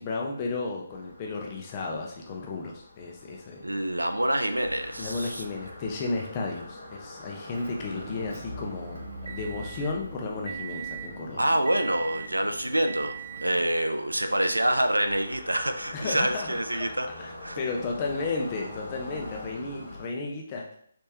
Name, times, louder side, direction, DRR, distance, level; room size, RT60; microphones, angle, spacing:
voice 1, 0.0-3.7 5.0-11.4 15.9-16.9 17.2-20.6, left 3 dB, 25° left, -1 dB, 0.7 m, -33 dB
sound 1, 0.9-20.0, left 2 dB, 45° left, 1.1 m, -45 dB
voice 2, 3.6-5.4 11.4-13.2 13.4-17.1 17.4-17.6, right 1 dB, 85° right, 7 dB, 0.4 m, -26 dB
Motor vehicle (road) / Engine, 7.5-13.7, right 5 dB, 60° right, 0.8 m, -40 dB
3.4 x 3.3 x 2.8 m, 0.63 s
figure-of-eight pair, 145°, 0 cm